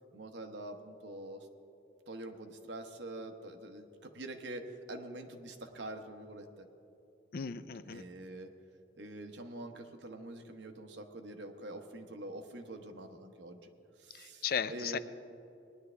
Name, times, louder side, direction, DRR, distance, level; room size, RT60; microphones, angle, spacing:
voice 1, 0.1-1.5 2.1-6.7 7.9-8.5 8.9-13.7 14.0-15.0, right 1 dB, 85° right, 5 dB, 1.0 m, -45 dB
voice 2, 7.3-8.0 14.1-15.0, left 7 dB, 55° left, 13 dB, 0.4 m, -36 dB
19.5 x 11.0 x 3.4 m, 2.8 s
head